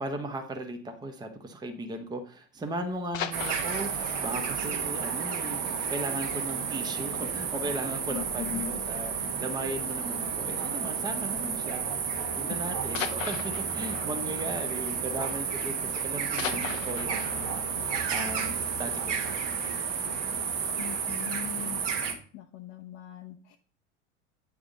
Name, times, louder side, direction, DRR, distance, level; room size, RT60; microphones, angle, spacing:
voice 1, 0.0-9.1 9.4-19.8, right 1 dB, 10° right, 6 dB, 0.8 m, -37 dB
sound 1, 2.9-6.4 6.8-6.9 7.3-7.5 7.8-7.9 8.7-9.1 10.4-10.6 11.5-11.6 12.9-15.7 16.0-19.1 19.6-19.7, left 9 dB, 85° left, 0.6 m, -40 dB
sound 2, 3.3-22.1, right 6 dB, 50° right, 1.3 m, -31 dB
voice 2, 8.1-8.8 12.5-12.6 20.8-21.8 22.3-23.6, left 14 dB, 45° left, 5 dB, 0.6 m, -39 dB
8.7 x 3.5 x 3.8 m, 0.42 s
hypercardioid pair, 85°, 38 cm